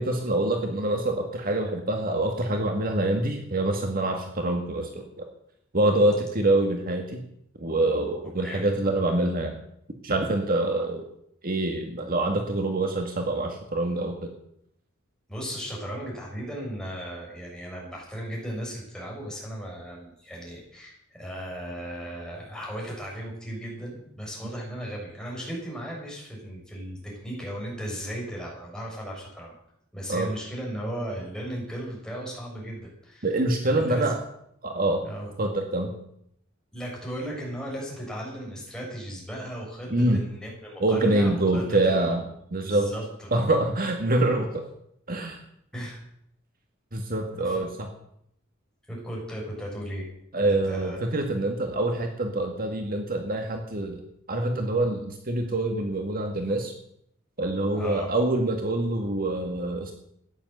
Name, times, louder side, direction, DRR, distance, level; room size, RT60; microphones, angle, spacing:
voice 1, 0.0-5.2 5.7-7.2 7.6-9.6 10.0-11.0 11.4-14.3 30.1-30.3 33.2-34.2 34.6-35.1 35.4-35.9 39.9-40.2 40.8-42.2 42.5-42.9 43.3-44.6 45.1-45.4 46.9-47.9 50.3-54.0 54.3-56.7 57.4-59.9, right 2 dB, 45° right, 4 dB, 2.0 m, -25 dB
voice 2, 15.3-29.5 29.9-33.3 33.6-34.1 35.0-35.3 36.7-42.1 42.6-43.6 45.7-46.0 47.3-47.6 48.9-51.0 57.7-58.1, equal, 5° left, -3 dB, 6.8 m, -36 dB
15.0 x 10.5 x 8.1 m, 0.74 s
head